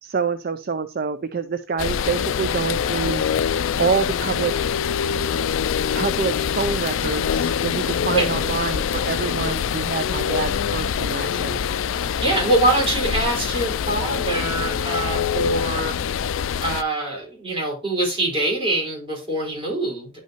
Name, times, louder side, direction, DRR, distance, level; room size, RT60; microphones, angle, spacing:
voice 1, 0.0-3.2 3.8-4.7 5.9-11.6, right 5 dB, 45° right, 10 dB, 0.4 m, -26 dB
sound 1, 1.8-16.8, left 7 dB, 80° left, 0.4 m, -24 dB
voice 2, 12.2-15.9 16.6-20.1, right 2 dB, 25° right, -2 dB, 4.4 m, -24 dB
10.0 x 5.5 x 2.9 m, 0.32 s
head